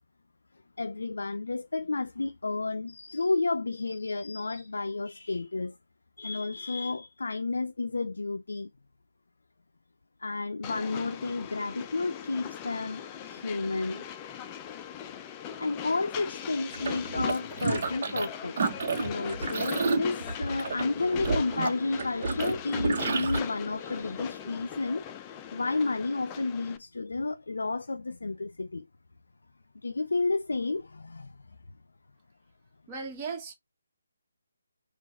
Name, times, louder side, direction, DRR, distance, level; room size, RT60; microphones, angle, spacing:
voice 1, 0.8-5.8 6.2-8.7 10.2-14.0 15.6-18.6 19.0-25.0 25.5-28.9 29.8-31.4, left 3 dB, 75° left, 0.5 m, -31 dB
Train, 10.6-26.8, left 9 dB, 20° left, 0.6 m, -40 dB
sound 1, 16.7-18.3 18.6-23.4, right 4 dB, 45° right, 1.2 m, -30 dB
voice 2, 32.9-33.5, right 5 dB, 20° right, 1.8 m, -36 dB
4.5 x 2.5 x 4.2 m
figure-of-eight pair, 150°, 0 cm